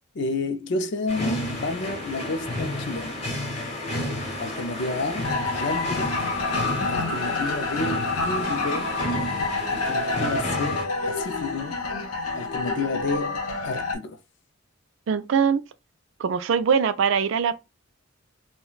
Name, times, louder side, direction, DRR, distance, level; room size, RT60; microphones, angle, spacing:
voice 1, 0.1-3.2 4.0-4.1 4.4-6.1 6.9-8.9 9.7-11.8 12.3-14.2, left 3 dB, 55° left, 0.4 m, -30 dB
sound 1, 1.1-10.8, left 1 dB, 30° left, 0.8 m, -31 dB
sound 2, 5.2-14.0, left 3 dB, 90° left, 0.8 m, -28 dB
voice 2, 6.8-7.2 15.1-15.6 16.2-17.6, right 6 dB, 60° right, 0.3 m, -23 dB
2.4 x 2.1 x 3.8 m
head